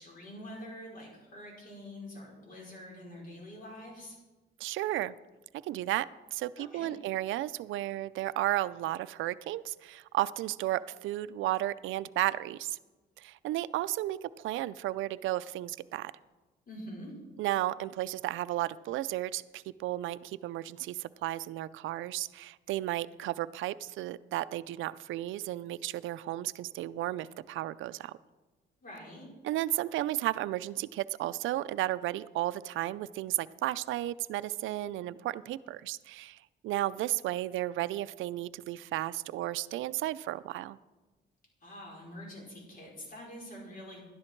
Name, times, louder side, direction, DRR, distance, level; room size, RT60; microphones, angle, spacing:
voice 1, 0.0-4.2 6.6-6.9 16.7-17.1 28.8-29.3 41.6-44.0, left 1 dB, 45° left, -2 dB, 4.9 m, -46 dB
voice 2, 4.6-5.1 5.6-12.8 13.2-16.1 17.4-28.1 29.4-40.8, right 15 dB, 80° right, 16 dB, 0.4 m, -33 dB
12.0 x 10.5 x 4.5 m, 1.2 s
cardioid pair, 90°, 20 cm